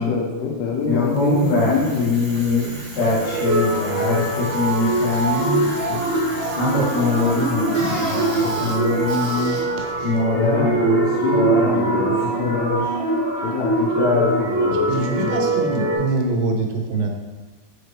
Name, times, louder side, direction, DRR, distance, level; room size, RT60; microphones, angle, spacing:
voice 1, 0.0-2.1 10.3-12.7 13.4-15.5, left 5 dB, 85° left, 0 dB, 2.9 m, -25 dB
Bicycle, 0.8-10.9, equal, 55° right, 1.1 m, -35 dB
voice 2, 0.9-6.0 6.6-9.8 10.0-12.1 12.4-13.0 14.0-14.3, left 3 dB, 65° left, -6 dB, 2.4 m, -23 dB
sound 1, 3.2-16.0, right 2 dB, 35° right, 1.2 m, -23 dB
voice 3, 9.8-10.1 14.9-17.1, right 3 dB, 80° right, 3 dB, 2.8 m, -24 dB
6.8 x 4.4 x 3.2 m, 1.3 s
omnidirectional pair, 4.8 m